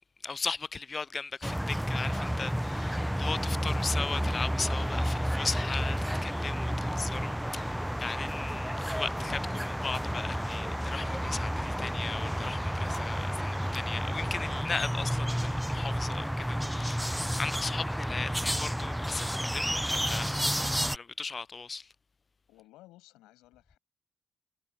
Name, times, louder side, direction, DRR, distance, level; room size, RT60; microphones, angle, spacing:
voice 1, 0.2-20.4 20.9-21.9, left 4 dB, 40° left, 0.3 m, -37 dB
sound 1, 1.4-21.0, equal, ahead, 0.6 m, -31 dB
voice 2, 22.5-23.8, left 17 dB, 85° left, 6.5 m, -56 dB
hypercardioid pair, 45°, 0 cm